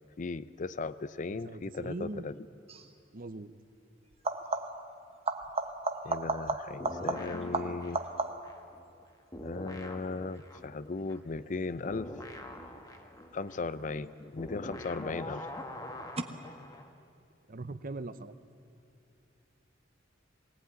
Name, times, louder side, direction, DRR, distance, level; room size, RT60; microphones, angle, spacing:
voice 1, 0.2-2.4 6.0-8.0 9.4-12.2 13.3-15.5, left 3 dB, 45° left, 15 dB, 0.5 m, -37 dB
voice 2, 1.3-2.3 3.1-3.5 17.5-18.3, right 2 dB, 50° right, 12 dB, 0.9 m, -40 dB
sound 1, 2.7-3.0 4.1-4.9 5.3-8.6 14.1-14.7 16.2-16.3, right 3 dB, 35° right, 1.2 m, -34 dB
sound 2, 6.8-9.0 9.3-16.9, left 1 dB, 20° left, 1.5 m, -44 dB
22.0 x 17.5 x 9.6 m, 2.5 s
head